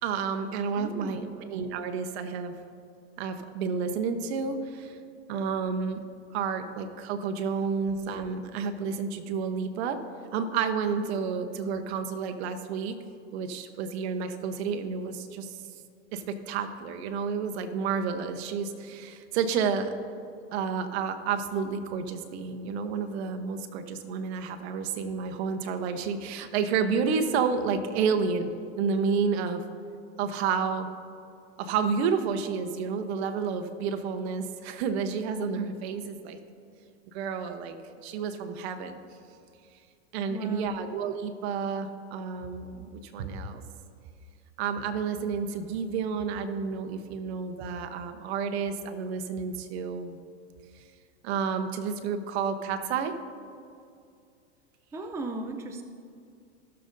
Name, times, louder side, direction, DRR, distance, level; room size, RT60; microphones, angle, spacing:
voice 1, 0.0-2.5 3.2-5.0 5.3-6.0 6.3-10.0 10.3-12.9 13.3-15.6 16.1-19.9 20.5-28.5 28.8-29.6 30.2-30.9 31.6-36.4 37.1-39.0 40.1-43.6 44.6-50.2 51.2-53.2, right 5 dB, 65° right, 7 dB, 1.0 m, -30 dB
voice 2, 0.8-1.4 40.3-40.8 54.9-55.8, right 2 dB, 10° right, 6 dB, 0.5 m, -37 dB
16.5 x 6.7 x 2.6 m, 2.4 s
hypercardioid pair, 110°, 35 cm